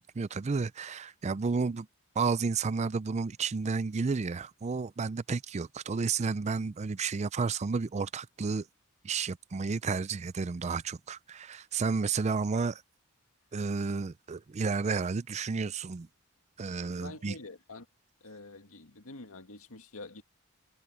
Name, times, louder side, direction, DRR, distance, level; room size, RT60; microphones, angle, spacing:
voice 1, 0.0-1.9 2.2-8.7 9.0-12.8 13.5-16.1 16.6-17.3, right 4 dB, 30° right, 0.4 m, -31 dB
voice 2, 17.0-17.9 18.2-20.2, left 2 dB, 75° left, 2.0 m, -46 dB
head